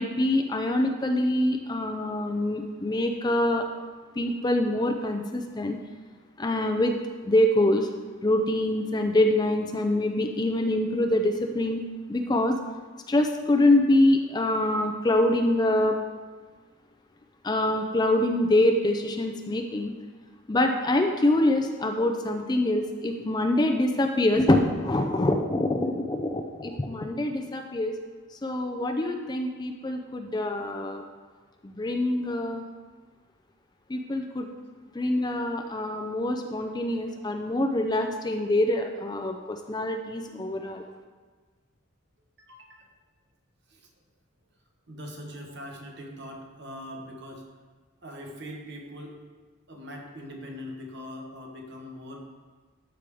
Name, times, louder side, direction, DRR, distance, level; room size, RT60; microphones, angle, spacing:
voice 1, 0.0-3.6 4.2-5.8 6.4-6.9 7.2-7.9 8.2-11.8 12.1-12.6 13.1-16.0 17.4-19.9 20.5-27.9 28.4-31.0 31.6-32.6 33.9-34.5 34.9-40.8, left 1 dB, 20° left, 4 dB, 0.4 m, -25 dB
voice 2, 42.4-42.9 43.7-43.9 44.9-47.5 48.0-49.2 49.7-52.3, equal, 55° right, 1 dB, 1.2 m, -42 dB
12.5 x 4.9 x 3.5 m, 1.4 s
head